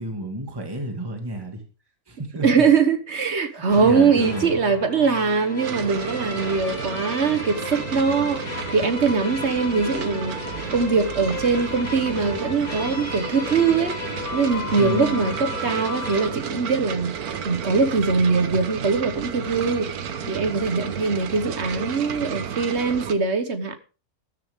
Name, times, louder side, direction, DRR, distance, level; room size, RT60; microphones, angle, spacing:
voice 1, 0.0-1.6 2.1-2.6 3.7-4.5 14.7-15.4, right 1 dB, 15° right, 2.2 m, -31 dB
voice 2, 2.4-10.4 10.7-19.9 20.3-23.8, right 5 dB, 50° right, 1.4 m, -22 dB
sound 1, 3.7-16.3, left 2 dB, 75° left, 5.2 m, -34 dB
sound 2, 5.6-23.1, right 7 dB, 90° right, 1.6 m, -33 dB
13.5 x 13.0 x 3.7 m
omnidirectional pair, 1.5 m